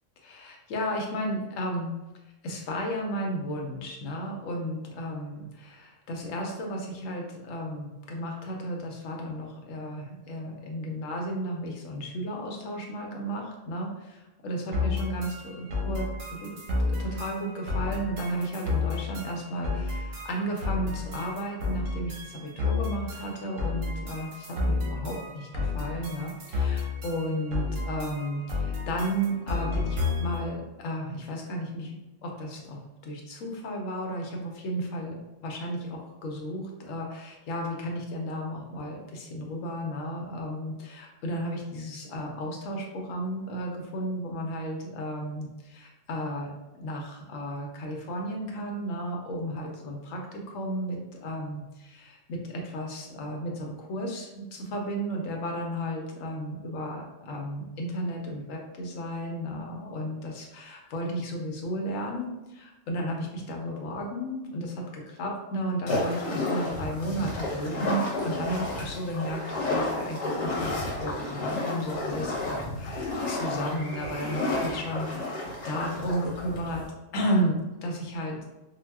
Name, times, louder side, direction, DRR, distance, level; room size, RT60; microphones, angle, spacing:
voice 1, 0.2-1.9 2.4-31.9 32.2-76.8 77.1-78.5, equal, 90° left, 0 dB, 1.0 m, -33 dB
sound 1, 14.7-30.5, left 3 dB, 80° right, 1.1 m, -31 dB
sound 2, 65.9-76.9, left 2 dB, 40° left, 0.8 m, -31 dB
3.9 x 2.0 x 2.2 m, 1.0 s
omnidirectional pair, 1.3 m